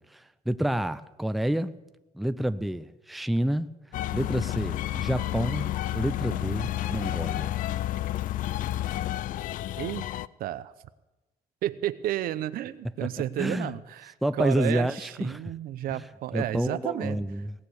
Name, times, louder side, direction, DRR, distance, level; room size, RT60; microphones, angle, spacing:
voice 1, 0.0-1.7 2.1-3.7 4.1-7.5 13.0-13.1 13.4-13.7 14.2-15.4 15.9-16.1 16.3-17.5, right 1 dB, ahead, 0.4 m, -29 dB
sound 1, 3.9-10.3, left 14 dB, 65° left, 0.4 m, -30 dB
voice 2, 9.8-10.1 10.4-10.7 11.6-17.2, right 13 dB, 80° right, 0.7 m, -32 dB
17.5 x 6.7 x 9.5 m
cardioid pair, 135°, 15 cm